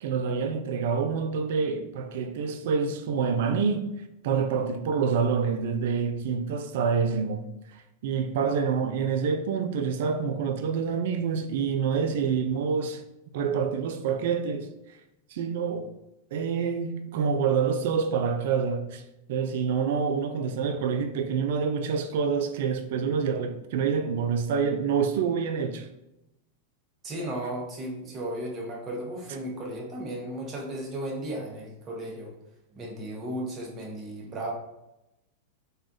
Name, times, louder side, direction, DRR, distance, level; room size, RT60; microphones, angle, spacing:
voice 1, 0.0-3.9 4.2-7.5 8.0-13.0 13.3-14.7 15.3-15.9 16.3-19.0 19.3-25.9, right 6 dB, 65° right, 0.3 m, -27 dB
voice 2, 27.0-32.3 32.7-34.5, right 1 dB, 30° right, 0.9 m, -35 dB
3.2 x 2.2 x 2.5 m
hypercardioid pair, 110°, 0 cm